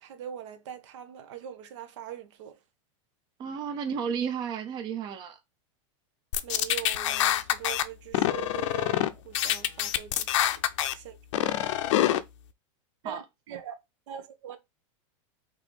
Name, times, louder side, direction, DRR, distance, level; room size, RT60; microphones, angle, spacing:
voice 1, 0.0-2.6 6.4-10.1 10.4-10.5 10.9-11.2 13.0-13.8 14.1-14.6, right 10 dB, 70° right, 0.9 m, -42 dB
voice 2, 3.4-5.4 13.0-13.2, right 7 dB, 30° right, 0.5 m, -32 dB
sound 1, 6.3-7.8 8.1-9.1 9.3-10.9 11.3-12.2, left 13 dB, 75° left, 0.5 m, -25 dB
3.9 x 2.8 x 4.6 m
supercardioid pair, 150°, 16 cm